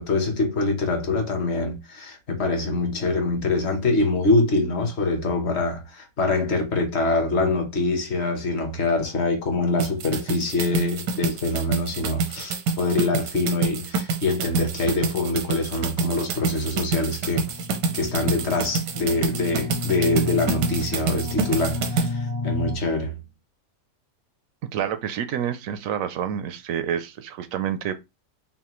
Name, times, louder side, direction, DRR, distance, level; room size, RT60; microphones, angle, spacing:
voice 1, 0.0-17.5 17.9-23.2, left 2 dB, 45° left, 1.1 m, -24 dB
sound 1, 9.8-22.1, right 4 dB, 85° right, 1.3 m, -27 dB
sound 2, 17.2-22.7, left 3 dB, 85° left, 1.9 m, -32 dB
voice 2, 24.7-28.0, right 9 dB, 70° right, 0.8 m, -28 dB
5.6 x 2.2 x 3.0 m
omnidirectional pair, 1.8 m